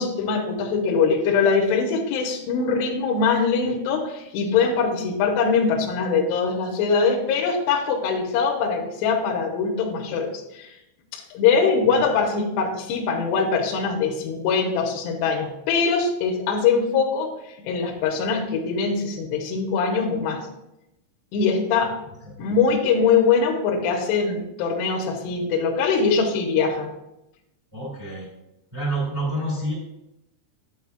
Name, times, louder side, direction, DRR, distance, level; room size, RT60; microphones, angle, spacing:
voice 1, 0.0-10.8 11.1-17.3 17.6-20.4 21.3-21.9 22.4-26.9, left 5 dB, 75° left, 0 dB, 2.8 m, -22 dB
voice 2, 27.7-28.3 28.7-29.7, right 1 dB, 10° right, -6 dB, 1.5 m, -28 dB
9.3 x 7.9 x 2.4 m, 0.87 s
omnidirectional pair, 5.5 m